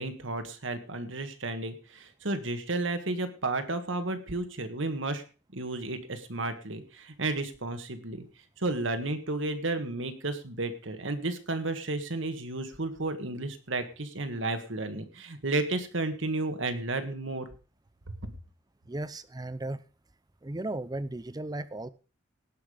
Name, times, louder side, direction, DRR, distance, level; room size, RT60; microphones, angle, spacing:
voice 1, 0.0-5.2 5.5-8.2 8.6-17.5 18.2-18.3, right 2 dB, 70° right, 8 dB, 1.7 m, -32 dB
voice 2, 18.9-19.8 20.4-21.9, right 2 dB, 20° right, 15 dB, 0.6 m, -35 dB
18.0 x 6.0 x 5.0 m, 0.35 s
head